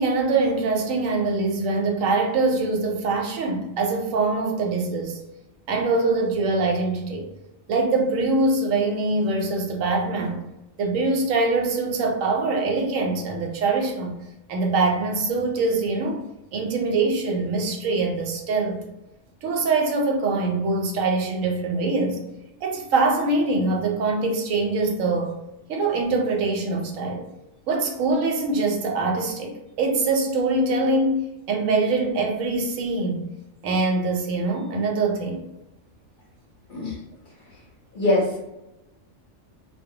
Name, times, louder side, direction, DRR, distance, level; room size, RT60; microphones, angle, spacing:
voice 1, 0.0-5.2 5.7-7.3 7.7-10.4 10.8-14.2 14.5-16.2 16.5-18.8 19.4-22.2 22.6-25.3 25.7-27.2 27.7-33.3 33.6-35.4, right 3 dB, 80° right, 1 dB, 1.0 m, -23 dB
voice 2, 37.9-38.5, left 1 dB, 50° left, -5 dB, 0.7 m, -23 dB
2.2 x 2.1 x 2.7 m, 0.92 s
omnidirectional pair, 1.4 m